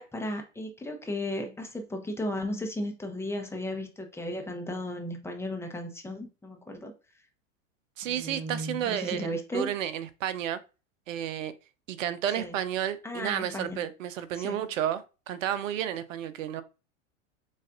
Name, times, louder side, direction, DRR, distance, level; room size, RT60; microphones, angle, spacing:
voice 1, 0.0-6.9 8.0-9.7 12.4-12.6 13.0-13.9 14.4-14.7, left 1 dB, 5° left, 0.7 m, -35 dB
voice 2, 8.0-10.6 11.1-11.5 11.9-16.6, right 10 dB, 75° right, 0.7 m, -32 dB
7.3 x 2.4 x 2.5 m
hypercardioid pair, 100°, 39 cm